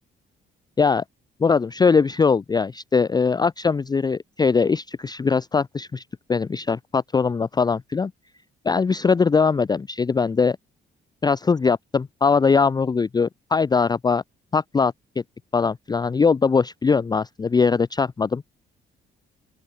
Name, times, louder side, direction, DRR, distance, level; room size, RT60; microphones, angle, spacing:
voice 1, 1.4-6.0 6.3-8.1 8.6-10.6 11.2-14.2 14.5-14.9 15.5-18.4, left 5 dB, 20° left, 0.4 m, -21 dB
open air
cardioid pair, 90°, 20 cm